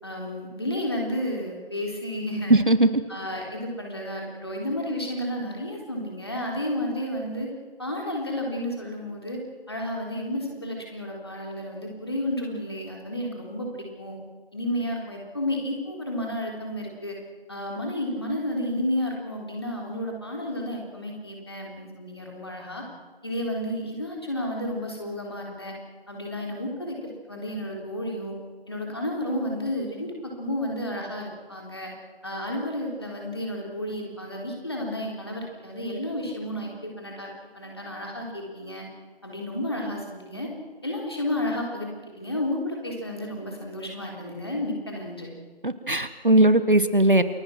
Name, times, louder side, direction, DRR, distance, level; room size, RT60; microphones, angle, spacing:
voice 1, 0.0-2.6 3.1-7.5 7.8-9.4 9.7-14.2 14.5-17.2 17.5-22.8 23.2-25.7 26.1-28.4 28.7-31.9 32.2-38.8 39.2-40.5 40.8-41.9 42.2-45.3, left 1 dB, 25° left, 0 dB, 3.8 m, -31 dB
voice 2, 2.5-2.9 45.6-47.2, right 1 dB, 55° right, 12 dB, 1.4 m, -18 dB
29.0 x 21.0 x 6.2 m, 1.4 s
figure-of-eight pair, 175°, 31 cm